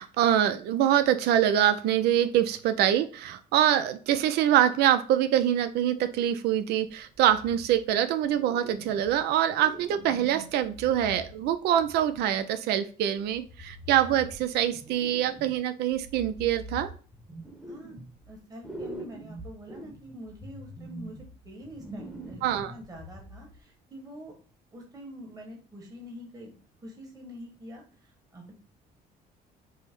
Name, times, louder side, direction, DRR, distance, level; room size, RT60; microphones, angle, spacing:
voice 1, 0.0-16.9 22.4-22.7, right 11 dB, 75° right, 10 dB, 0.4 m, -25 dB
sound 1, 7.1-8.0 8.2-9.2 9.6-12.4 13.2-15.6 15.9-18.4 18.6-23.6, right 1 dB, 5° right, 0.9 m, -44 dB
voice 2, 18.3-21.2 21.4-24.3 24.7-28.5, equal, 20° right, 0 dB, 1.2 m, -46 dB
5.5 x 2.1 x 4.4 m, 0.39 s
cardioid pair, 110°, 17 cm